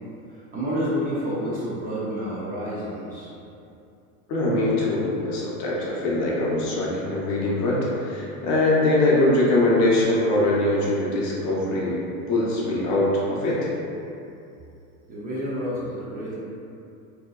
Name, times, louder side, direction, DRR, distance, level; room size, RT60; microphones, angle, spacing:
voice 1, 0.3-3.3 15.1-16.3, equal, 20° right, -9 dB, 0.5 m, -29 dB
voice 2, 4.3-12.0 12.3-13.7, left 2 dB, 45° left, -5 dB, 0.6 m, -22 dB
2.7 x 2.1 x 2.3 m, 2.7 s
hypercardioid pair, 110°, 42 cm